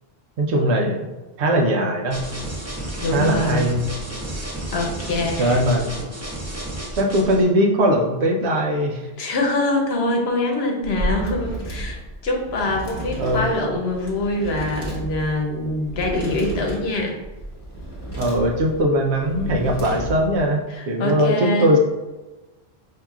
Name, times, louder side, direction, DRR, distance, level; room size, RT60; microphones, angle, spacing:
voice 1, 0.4-1.1 1.4-2.3 3.1-3.8 5.4-5.9 6.9-9.1 13.2-13.4 18.2-21.8, equal, 85° right, 1 dB, 1.0 m, -20 dB
sound 1, 2.1-7.4, right 1 dB, 15° right, 0.7 m, -31 dB
voice 2, 3.0-3.7 4.7-5.6 9.2-12.0 12.2-17.2 20.7-21.7, left 2 dB, 75° left, 1 dB, 1.0 m, -24 dB
sound 2, 10.8-20.4, right 1 dB, 25° left, 1.0 m, -32 dB
5.6 x 2.8 x 2.3 m, 1.1 s
omnidirectional pair, 1.1 m